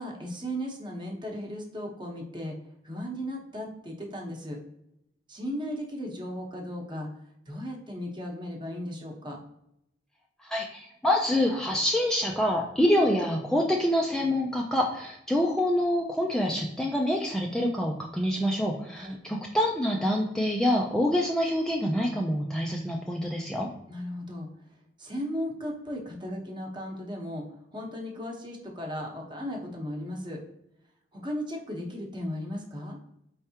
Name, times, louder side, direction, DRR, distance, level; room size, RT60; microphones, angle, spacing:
voice 1, 0.0-2.6 2.8-4.6 5.3-7.1 7.5-9.4 18.9-19.2 23.9-24.5 25.0-27.4 27.7-30.4 31.1-33.0, equal, 25° right, 0 dB, 0.9 m, -36 dB
voice 2, 10.4-23.7, left 1 dB, 5° left, -1 dB, 0.4 m, -26 dB
4.6 x 3.4 x 2.8 m, 0.78 s
head